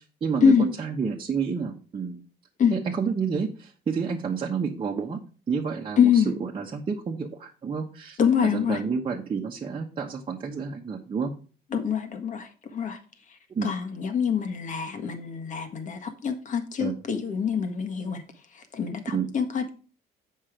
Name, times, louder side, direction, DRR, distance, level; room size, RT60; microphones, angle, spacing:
voice 1, 0.0-2.2 2.7-5.2 5.5-11.3 13.5-13.7 16.8-16.9 19.1-19.3, right 5 dB, 30° right, -1 dB, 1.1 m, -30 dB
voice 2, 6.0-6.3 8.2-8.8 11.7-13.0 13.6-18.2 18.7-19.8, left 7 dB, 50° left, 7 dB, 1.6 m, -25 dB
7.4 x 5.6 x 5.0 m, 0.38 s
cardioid pair, 110°, 17 cm